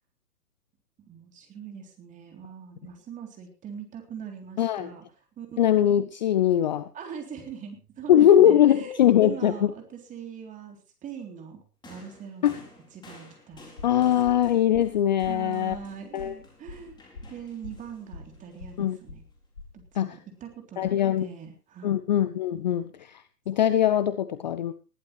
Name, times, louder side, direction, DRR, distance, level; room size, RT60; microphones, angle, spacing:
voice 1, 1.0-5.0 5.4-5.5 6.9-12.7 12.9-13.7 14.0-14.3 15.3-19.2 19.7-21.9, right 7 dB, 15° right, 4 dB, 3.5 m, -42 dB
voice 2, 4.6-4.9 5.6-6.9 8.1-9.7 12.4-12.6 13.8-15.8 16.1-16.3 18.8-19.0 19.9-20.2 20.8-21.3 21.8-24.7, left 11 dB, 30° left, 14 dB, 0.6 m, -21 dB
sound 1, 11.8-19.3 20.3-20.5, left 3 dB, 10° left, 4.3 m, -54 dB
sound 2, 13.5-19.9, left 3 dB, 80° left, 4.1 m, -45 dB
20.5 x 14.5 x 3.3 m, 0.33 s
figure-of-eight pair, 130°, 47 cm